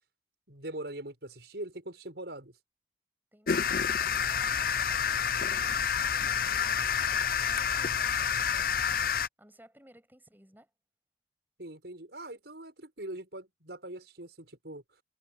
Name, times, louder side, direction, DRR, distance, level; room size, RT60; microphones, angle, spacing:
voice 1, 0.5-2.5 11.6-14.8, right 1 dB, 75° right, 6.0 m, -42 dB
voice 2, 3.3-5.4 6.2-9.0 9.4-10.7, right 1 dB, 10° right, 7.5 m, -58 dB
sound 1, 3.5-9.3, left 7 dB, 55° left, 0.6 m, -28 dB
head